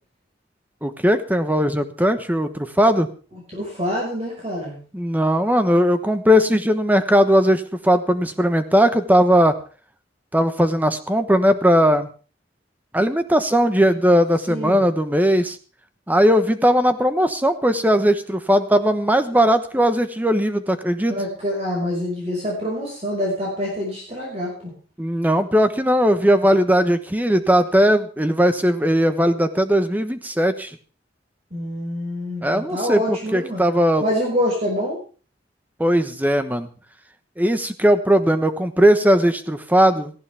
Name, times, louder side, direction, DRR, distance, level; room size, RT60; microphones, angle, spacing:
voice 1, 0.8-3.1 4.9-9.5 10.3-12.1 12.9-15.6 16.1-21.1 25.0-30.7 32.4-34.0 35.8-36.7 37.4-40.1, equal, 10° right, 9 dB, 1.1 m, -18 dB
voice 2, 3.5-4.8 14.5-14.8 21.1-24.7 31.5-33.7 34.0-35.0, equal, 35° right, -3 dB, 5.7 m, -26 dB
18.0 x 15.0 x 3.6 m, 0.39 s
head